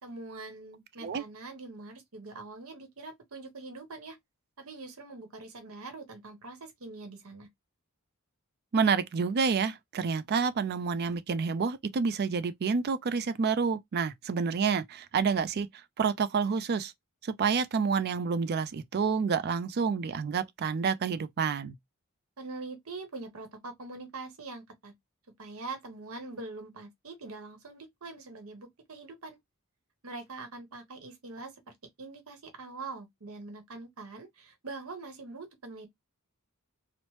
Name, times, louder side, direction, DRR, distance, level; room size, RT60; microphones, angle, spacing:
voice 1, 0.0-4.2 4.6-7.5 22.4-24.9 25.4-29.4 30.0-35.9, right 3 dB, 65° right, 0.9 m, -43 dB
voice 2, 8.7-15.7 16.0-16.9 17.2-21.7, right 5 dB, 45° right, 0.4 m, -28 dB
3.0 x 2.0 x 3.0 m
head